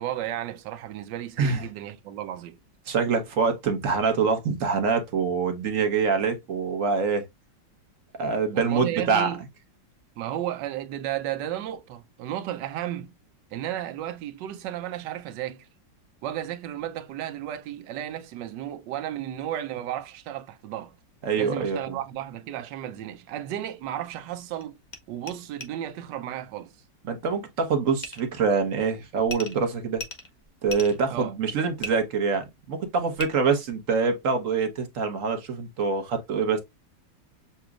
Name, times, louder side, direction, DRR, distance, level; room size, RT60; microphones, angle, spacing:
voice 1, 0.0-2.6 8.5-9.4 10.2-13.1 13.5-15.7 16.2-20.9 21.4-24.8 25.1-26.7 31.1-31.3, right 12 dB, 75° right, 1.2 m, -33 dB
voice 2, 1.4-1.7 2.9-7.3 8.2-9.3 21.2-22.0 27.0-30.0 30.6-36.6, right 5 dB, 50° right, 1.2 m, -25 dB
sound 1, 23.8-23.9 24.6-24.7 24.9-25.0 25.3-25.4 25.6-25.7 28.0-28.3 29.3-29.6 29.9-31.0 31.8-31.9 33.1-33.3, left 1 dB, 50° left, 0.5 m, -36 dB
6.8 x 2.9 x 2.4 m
omnidirectional pair, 2.0 m